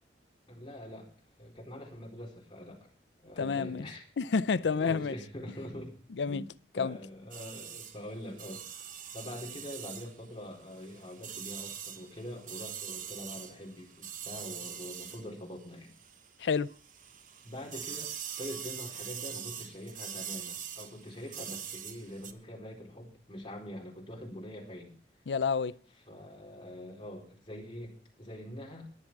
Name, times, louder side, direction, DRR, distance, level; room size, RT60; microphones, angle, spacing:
voice 1, 0.5-1.1 1.4-2.9 3.2-4.0 4.7-5.9 6.3-6.5 6.8-8.6 9.1-15.9 17.4-18.1 18.4-25.0 26.1-28.9, left 1 dB, 30° left, 4.2 m, -44 dB
voice 2, 3.4-3.9 4.2-5.1 6.2-6.4 6.8-7.0 16.4-16.7 25.3-25.7, left 5 dB, 90° left, 0.5 m, -29 dB
sound 1, 7.3-16.4 16.7-22.3, right 8 dB, 50° right, 1.1 m, -43 dB
21.5 x 7.5 x 4.6 m
head